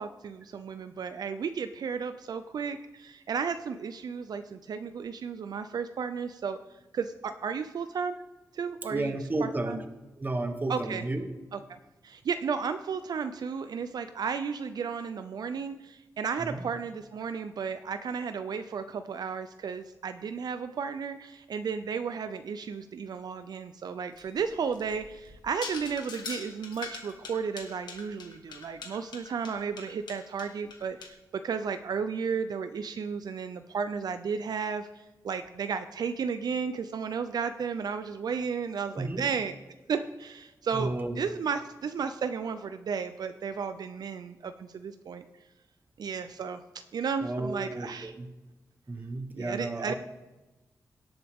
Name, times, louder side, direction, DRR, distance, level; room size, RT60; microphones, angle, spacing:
voice 1, 0.0-6.6 6.9-8.2 8.5-9.1 9.4-9.8 10.7-11.0 11.5-39.5 39.9-45.2 46.0-46.6 46.9-48.2 49.3-49.9, right 6 dB, 70° right, 10 dB, 0.5 m, -33 dB
voice 2, 8.9-9.8 10.2-11.3 16.4-16.6 38.9-39.2 40.7-41.2 47.2-48.3 48.9-49.9, right 2 dB, 25° right, 7 dB, 1.1 m, -32 dB
sound 1, 24.2-31.1, left 4 dB, 90° left, 1.5 m, -43 dB
17.5 x 7.9 x 3.6 m, 1.1 s
wide cardioid pair, 120°, 7 cm